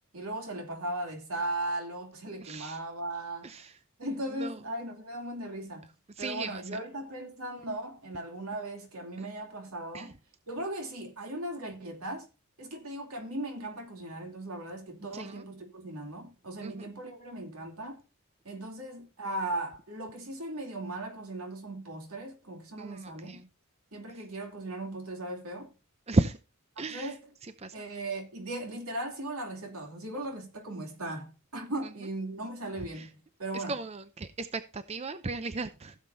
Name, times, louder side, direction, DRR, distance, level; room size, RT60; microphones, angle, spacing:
voice 1, 0.1-3.6 4.0-5.9 6.2-10.1 10.5-12.3 12.6-18.0 18.4-23.4 23.9-25.7 26.8-27.2 27.7-33.7, right 1 dB, 80° right, 2.9 m, -38 dB
voice 2, 2.4-2.8 3.4-3.7 4.3-4.6 6.2-6.6 9.2-9.3 9.9-10.1 15.1-15.4 16.6-16.8 22.8-23.5 26.1-26.4 26.8-27.1 27.6-27.7 32.9-33.1 33.5-35.9, right 2 dB, 30° right, 0.6 m, -34 dB
15.5 x 7.4 x 2.7 m
head